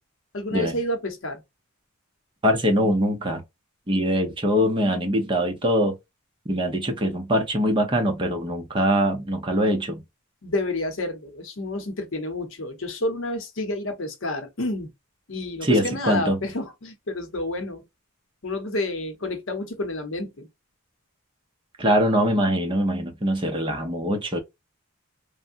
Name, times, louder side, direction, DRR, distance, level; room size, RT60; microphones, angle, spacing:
voice 1, 0.3-1.4 10.4-14.9 15.3-17.8 18.4-20.5, left 1 dB, 60° left, 0.8 m, -29 dB
voice 2, 2.4-3.4 3.9-6.0 6.5-10.0 15.6-16.4 21.8-24.4, equal, 20° right, 0.7 m, -23 dB
3.4 x 2.1 x 2.5 m
head